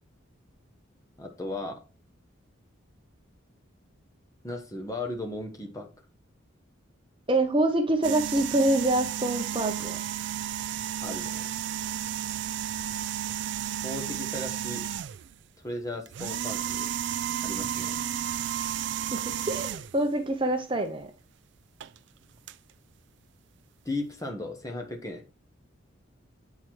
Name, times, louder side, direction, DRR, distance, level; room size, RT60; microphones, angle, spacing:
voice 1, 1.2-1.8 4.4-5.9 11.0-11.5 13.8-14.9 15.6-16.9 17.4-18.0 23.8-25.2, left 2 dB, 15° left, 3 dB, 1.1 m, -36 dB
voice 2, 7.3-10.0 19.1-21.1, right 1 dB, 25° right, 5 dB, 0.7 m, -26 dB
sound 1, 8.0-15.3 16.1-20.0 21.8-22.0 22.5-22.6, right 10 dB, 55° right, 0.3 m, -32 dB
8.1 x 4.7 x 4.4 m, 0.33 s
head